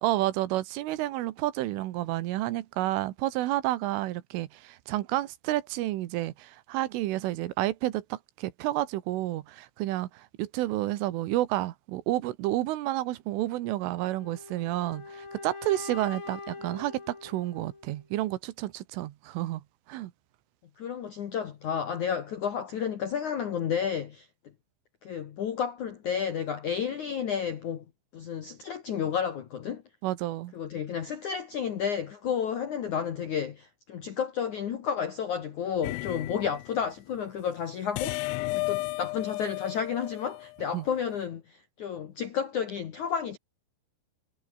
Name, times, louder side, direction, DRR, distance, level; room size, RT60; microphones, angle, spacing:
voice 1, 0.0-19.6 19.9-20.1 30.0-30.5 40.7-40.9, right 16 dB, 80° right, 3.6 m, -30 dB
sound 1, 14.0-18.0, left 4 dB, 25° left, 4.6 m, -43 dB
voice 2, 20.8-24.3 25.0-27.8 28.1-29.8 30.5-43.4, left 7 dB, 70° left, 1.9 m, -31 dB
sound 2, 35.8-36.8 38.0-40.8, left 24 dB, 90° left, 2.6 m, -33 dB
omnidirectional pair, 5.9 m